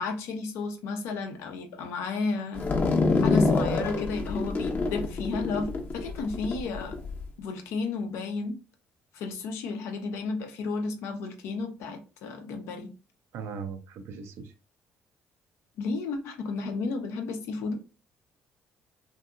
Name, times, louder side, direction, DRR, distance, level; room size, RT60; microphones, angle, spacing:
voice 1, 0.0-2.6 3.2-7.0 7.4-8.6 9.1-12.9 15.8-17.8, left 4 dB, 75° left, 0.6 m, -32 dB
sound 1, 2.6-7.2, left 3 dB, 40° left, 0.8 m, -26 dB
voice 2, 13.3-14.4, right 5 dB, 70° right, 0.5 m, -38 dB
2.7 x 2.6 x 2.4 m
hypercardioid pair, 60°, 5 cm